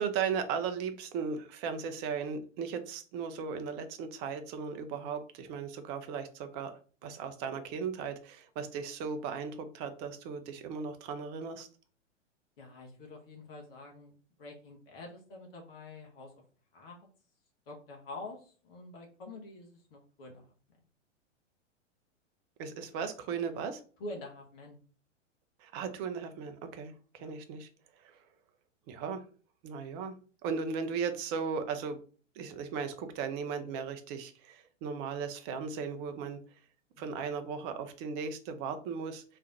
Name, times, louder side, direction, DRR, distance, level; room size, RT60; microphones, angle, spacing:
voice 1, 0.0-11.7 22.6-23.8 25.6-27.7 28.0-28.2 28.9-29.2 29.6-30.2 30.4-32.0 32.4-36.4 37.0-39.2, right 6 dB, 30° right, 8 dB, 0.6 m, -37 dB
voice 2, 12.6-16.3 16.7-17.0 17.7-20.5 24.0-24.8 27.2-27.3 37.0-37.2, left 2 dB, 50° left, 1 dB, 1.4 m, -47 dB
3.4 x 3.3 x 3.9 m, 0.39 s
figure-of-eight pair, 105°, 37 cm